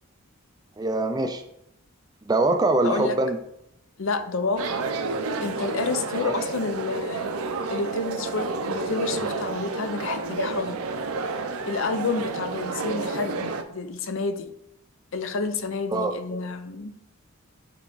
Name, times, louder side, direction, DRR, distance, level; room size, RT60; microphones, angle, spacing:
voice 1, 0.8-1.4 2.3-3.4 6.1-6.3 15.9-16.1, right 2 dB, 15° right, 7 dB, 0.3 m, -23 dB
voice 2, 2.8-3.2 4.0-4.8 5.4-7.3 7.7-10.8 11.7-14.5 15.1-16.9, left 4 dB, 60° left, 8 dB, 0.6 m, -29 dB
sound 1, 4.6-13.6, right 3 dB, 75° right, 0.6 m, -30 dB
8.3 x 3.5 x 3.9 m, 0.79 s
head